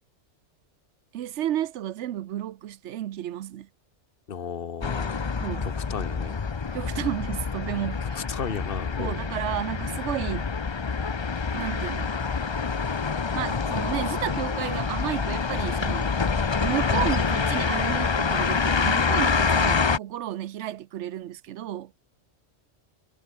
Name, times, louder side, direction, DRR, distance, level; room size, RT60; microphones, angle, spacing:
voice 1, 1.1-3.7 5.4-5.7 6.7-8.2 9.0-10.5 11.5-12.1 13.3-16.1 16.6-21.9, right 12 dB, 70° right, 0.9 m, -32 dB
voice 2, 4.3-5.2 5.6-6.4 8.0-9.2, left 7 dB, 50° left, 1.1 m, -34 dB
sound 1, 4.8-20.0, left 5 dB, 30° left, 0.5 m, -26 dB
omnidirectional pair, 1.2 m